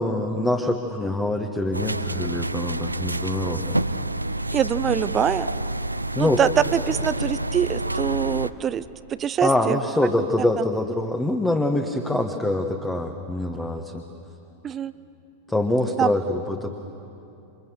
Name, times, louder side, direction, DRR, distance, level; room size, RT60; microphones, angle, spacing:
voice 1, 0.0-3.9 6.1-6.4 9.4-14.0 15.5-16.7, left 1 dB, 10° left, 4 dB, 1.5 m, -24 dB
sound 1, 1.7-8.5, right 1 dB, 85° right, 0.5 m, -28 dB
voice 2, 4.5-5.5 6.2-9.8 10.4-10.7 14.6-14.9 16.0-16.1, right 9 dB, 25° right, 15 dB, 0.6 m, -24 dB
28.5 x 26.0 x 6.5 m, 2.7 s
figure-of-eight pair, 90°, 0 cm